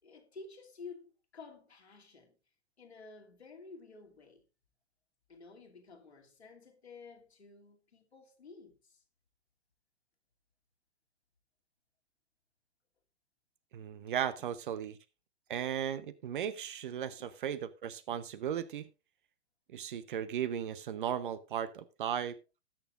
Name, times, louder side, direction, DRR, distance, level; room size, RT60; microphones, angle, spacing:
voice 1, 0.0-2.4 2.8-4.4 5.3-9.0 17.1-17.4, left 4 dB, 75° left, 2.8 m, -52 dB
voice 2, 13.7-15.0 15.5-18.9 19.7-22.4, right 9 dB, 50° right, 0.9 m, -36 dB
19.5 x 7.0 x 2.5 m
figure-of-eight pair, 110°, 33 cm